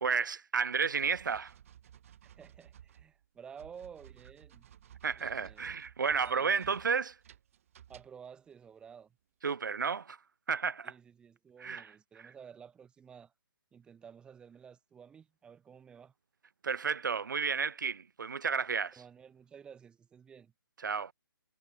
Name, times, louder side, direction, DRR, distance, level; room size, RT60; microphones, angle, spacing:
voice 1, 0.0-1.5 5.0-7.2 9.4-10.2 10.5-10.9 11.6-12.3 16.6-19.0 20.8-21.1, right 6 dB, 55° right, 0.7 m, -32 dB
sound 1, 1.0-8.3, right 10 dB, 35° right, 1.5 m, -56 dB
voice 2, 2.2-4.7 5.2-5.7 6.2-6.5 7.9-9.1 10.8-13.3 13.7-16.1 19.0-20.5, right 7 dB, 5° right, 1.2 m, -53 dB
figure-of-eight pair, 140°, 12 cm